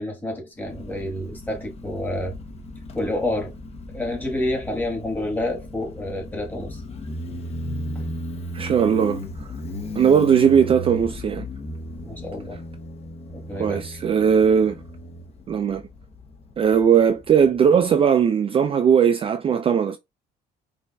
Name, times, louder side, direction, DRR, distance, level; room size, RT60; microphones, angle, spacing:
voice 1, 0.0-2.4 2.9-3.6 3.9-6.8 12.0-12.6 13.3-13.9, left 1 dB, 10° left, 1.3 m, -29 dB
Motorcycle, 0.6-17.8, left 1 dB, 35° left, 0.8 m, -36 dB
voice 2, 8.5-9.2 10.0-11.5 13.6-14.8 15.5-15.8 16.6-20.0, right 7 dB, 35° right, 0.4 m, -18 dB
5.1 x 2.5 x 2.3 m
cardioid pair, 120°, 17 cm